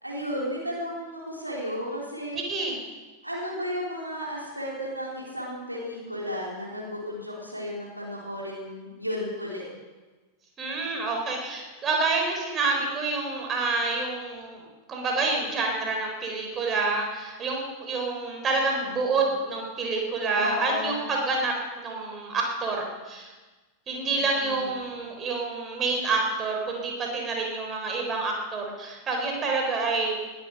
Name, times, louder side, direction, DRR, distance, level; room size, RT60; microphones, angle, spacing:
voice 1, 0.0-2.4 3.2-9.6 20.4-20.9 24.2-24.7, equal, 90° right, -4 dB, 3.9 m, -33 dB
voice 2, 2.3-2.8 10.6-23.3 23.9-30.2, right 3 dB, 25° right, 1 dB, 3.7 m, -28 dB
19.5 x 11.5 x 5.4 m, 1.3 s
figure-of-eight pair, 90°, 0 cm